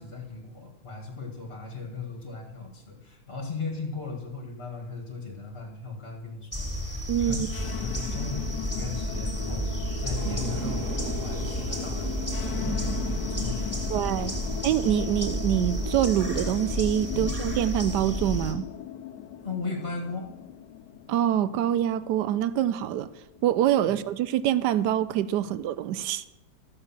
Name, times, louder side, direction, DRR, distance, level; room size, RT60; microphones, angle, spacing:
voice 1, 0.0-7.5 7.8-14.5 17.1-17.2 19.4-20.3 25.4-25.5, left 4 dB, 35° left, 2 dB, 2.0 m, -37 dB
sound 1, 6.5-18.5, right 1 dB, 10° left, 2.4 m, -32 dB
voice 2, 7.1-7.5 13.9-14.3 14.6-18.7 21.1-23.1 23.4-26.2, right 11 dB, 75° right, 15 dB, 1.1 m, -25 dB
sound 2, 7.4-23.5, left 10 dB, 70° left, 1.2 m, -38 dB
sound 3, 10.2-17.1, right 4 dB, 50° right, 1.3 m, -40 dB
14.0 x 6.7 x 7.2 m, 1.0 s
omnidirectional pair, 2.0 m